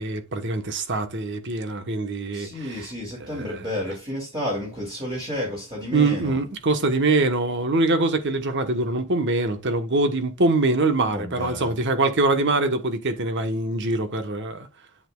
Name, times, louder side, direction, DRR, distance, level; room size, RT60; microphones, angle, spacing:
voice 1, 0.0-2.7 3.2-3.6 5.9-14.7, right 2 dB, 55° right, 1.2 m, -23 dB
voice 2, 2.3-6.4 11.0-11.8, left 1 dB, 20° right, 2.8 m, -31 dB
8.4 x 7.7 x 2.4 m
head